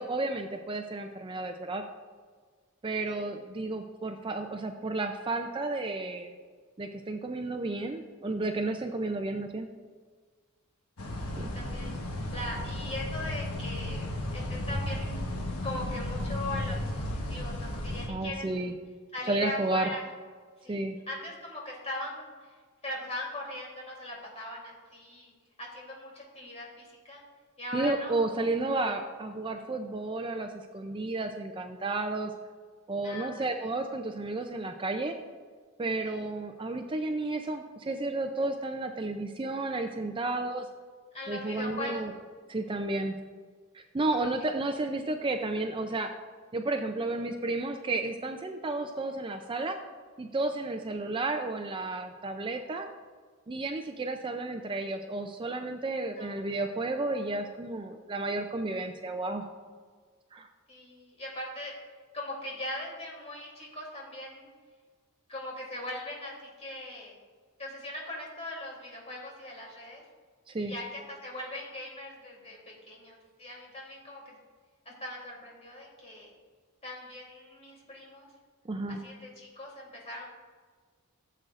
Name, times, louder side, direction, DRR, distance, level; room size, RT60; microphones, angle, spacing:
voice 1, 0.0-1.8 2.8-6.3 6.8-9.7 11.3-11.5 18.1-18.7 19.3-19.9 20.7-21.0 27.7-32.3 32.9-35.2 35.8-40.7 41.3-42.1 42.5-43.2 43.7-46.1 46.5-49.8 50.2-52.9 53.5-59.5 60.3-60.5 70.5-70.7 78.7-79.0, right 2 dB, 25° right, 5 dB, 0.4 m, -32 dB
voice 2, 3.1-3.4 11.3-15.2 15.6-18.7 19.1-20.0 20.6-22.6 22.8-25.3 25.6-27.2 27.6-28.4 33.0-33.7 36.0-36.3 41.1-42.2 44.2-44.3 56.1-56.4 60.7-61.7 62.1-64.5 65.3-67.1 67.6-70.0 70.6-74.4 74.8-76.3 76.8-78.3 78.9-80.3, left 1 dB, 30° left, -3 dB, 3.1 m, -40 dB
sound 1, 11.0-18.1, left 1 dB, 80° left, 1.2 m, -34 dB
15.0 x 7.7 x 2.5 m, 1.5 s
head